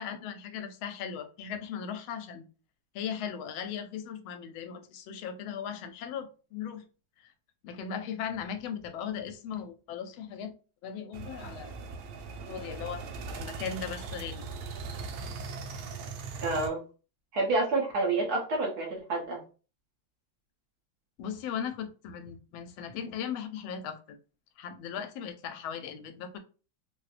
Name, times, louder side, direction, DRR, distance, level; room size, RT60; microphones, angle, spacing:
voice 1, 0.0-2.4 2.9-6.8 7.2-7.3 7.6-10.5 10.8-11.7 12.5-13.0 13.4-14.5 21.2-24.0 24.6-26.4, left 7 dB, 85° left, 1.4 m, -38 dB
sound 1, 11.1-16.7, right 4 dB, 90° right, 1.4 m, -40 dB
voice 2, 16.4-16.8 17.3-19.4, right 2 dB, 60° right, 1.4 m, -28 dB
4.4 x 2.1 x 2.4 m
omnidirectional pair, 2.2 m